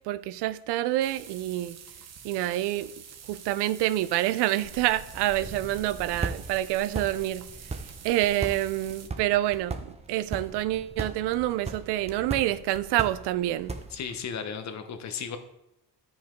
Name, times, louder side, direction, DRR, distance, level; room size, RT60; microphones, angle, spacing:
voice 1, 0.0-1.8 2.2-2.9 3.3-7.5 8.0-13.7, right 14 dB, 85° right, 0.6 m, -27 dB
sound 1, 1.0-9.1, right 7 dB, 40° right, 0.9 m, -47 dB
sound 2, 4.6-14.2, right 4 dB, 15° right, 0.7 m, -39 dB
voice 2, 13.9-15.4, left 6 dB, 45° left, 1.0 m, -35 dB
10.5 x 5.6 x 4.5 m
cardioid pair, 135°, 39 cm